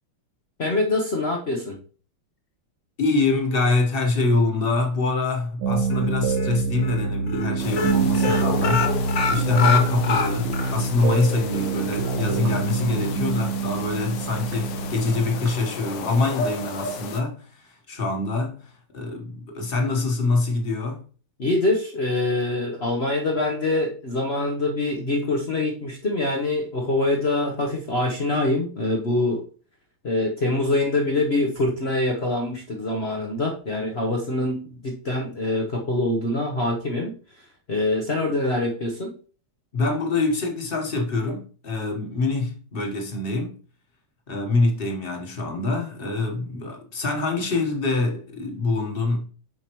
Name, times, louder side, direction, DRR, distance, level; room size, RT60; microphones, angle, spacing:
voice 1, 0.6-1.8 21.4-29.4 30.0-37.1 37.7-39.1, left 2 dB, 50° left, 0.7 m, -24 dB
voice 2, 3.0-21.0 39.7-43.6 44.3-49.2, left 3 dB, 30° left, 1.2 m, -25 dB
sound 1, 5.6-15.5, right 4 dB, 75° right, 1.8 m, -26 dB
sound 2, 5.9-6.5 6.8-7.0 7.3-7.5 7.7-10.7 11.1-11.2 11.6-11.7, left 6 dB, 90° left, 0.6 m, -25 dB
sound 3, 7.6-17.2, left 5 dB, 65° left, 1.4 m, -34 dB
7.8 x 5.4 x 3.1 m
omnidirectional pair, 2.4 m